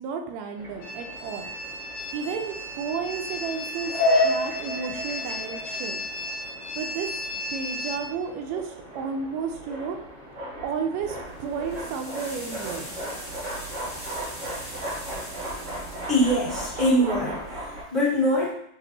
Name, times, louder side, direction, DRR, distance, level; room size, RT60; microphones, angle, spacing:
voice 1, 0.0-1.5 2.1-3.9 4.2-6.0 6.7-10.0 10.6-12.9, right 6 dB, 80° right, 3 dB, 1.6 m, -32 dB
sound 1, 0.6-17.8, left 1 dB, 65° right, 0.7 m, -33 dB
sound 2, 0.8-8.0, left 1 dB, 90° left, 2.1 m, -35 dB
sound 3, 11.0-16.9, equal, 10° right, 1.1 m, -41 dB
voice 2, 16.1-18.5, equal, 30° right, -10 dB, 1.0 m, -23 dB
6.8 x 2.6 x 2.8 m, 0.68 s
omnidirectional pair, 3.4 m